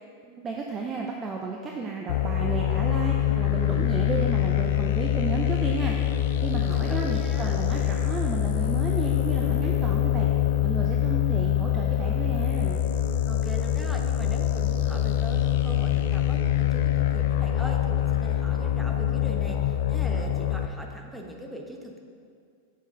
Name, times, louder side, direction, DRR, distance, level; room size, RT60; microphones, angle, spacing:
voice 1, 0.2-6.0 6.4-10.3 10.6-12.8, right 4 dB, 20° right, 0 dB, 0.6 m, -33 dB
sound 1, 2.1-20.7, left 10 dB, 55° left, 0.3 m, -25 dB
voice 2, 6.6-7.6 13.3-22.0, equal, 5° right, 1 dB, 0.9 m, -41 dB
7.3 x 6.2 x 3.8 m, 2.2 s
figure-of-eight pair, 90°, 0 cm